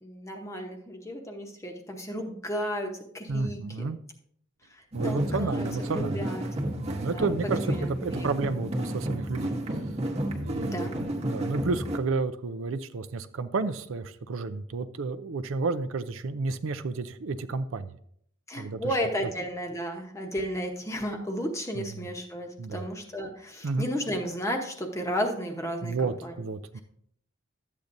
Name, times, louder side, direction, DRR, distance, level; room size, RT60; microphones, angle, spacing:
voice 1, 0.0-3.9 4.7-5.7 5.9-6.4 7.0-7.3 7.6-8.6 10.6-10.9 18.5-26.4, equal, 15° left, 3 dB, 0.9 m, -33 dB
voice 2, 3.3-4.0 4.9-6.1 6.7-7.7 8.0-9.5 10.4-10.9 11.2-18.0 18.5-18.8 21.8-22.1 22.6-22.9 23.6-23.9 25.8-26.8, right 3 dB, 70° right, 10 dB, 0.5 m, -31 dB
sound 1, 4.9-12.0, right 1 dB, 30° right, 1.0 m, -31 dB
12.0 x 8.4 x 2.6 m, 0.66 s
head